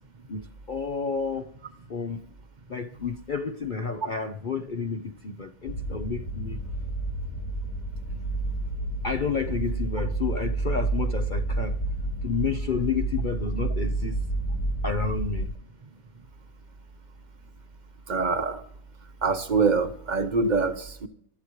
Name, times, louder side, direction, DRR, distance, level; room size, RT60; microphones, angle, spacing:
voice 1, 0.3-1.6 1.9-2.2 2.7-6.6 9.0-11.8 12.2-14.2 14.8-15.5, left 5 dB, 45° left, 0.7 m, -30 dB
sound 1, 5.7-15.5, right 2 dB, 80° left, 3.6 m, -30 dB
voice 2, 18.1-18.6 19.2-21.1, right 4 dB, 35° right, 1.1 m, -24 dB
26.5 x 13.0 x 3.1 m
omnidirectional pair, 1.6 m